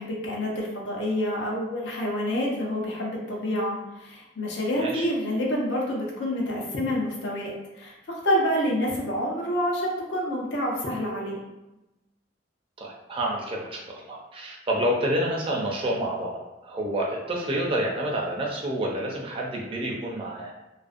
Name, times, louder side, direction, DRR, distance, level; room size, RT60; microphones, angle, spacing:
voice 1, 0.0-11.4, equal, 70° left, -2 dB, 0.6 m, -28 dB
voice 2, 12.8-20.5, right 1 dB, 30° right, -2 dB, 0.5 m, -28 dB
2.5 x 2.1 x 2.4 m, 1.0 s
head